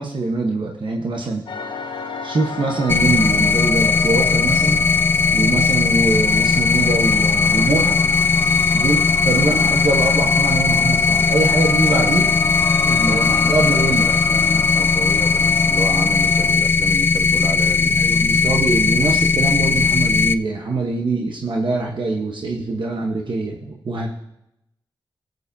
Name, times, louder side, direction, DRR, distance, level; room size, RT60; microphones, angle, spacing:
voice 1, 0.0-1.4 2.2-4.9 5.3-8.0 8.7-12.3 12.8-14.1 17.9-24.1, right 3 dB, 65° right, 0 dB, 1.1 m, -23 dB
sound 1, 1.5-16.5, left 4 dB, 70° left, 0.8 m, -30 dB
sound 2, 2.9-20.3, left 4 dB, 25° left, 0.4 m, -18 dB
voice 2, 11.9-12.3 13.1-17.9, right 2 dB, 45° right, 5 dB, 1.4 m, -30 dB
19.0 x 8.0 x 2.7 m, 0.84 s
cardioid pair, 60°, 9 cm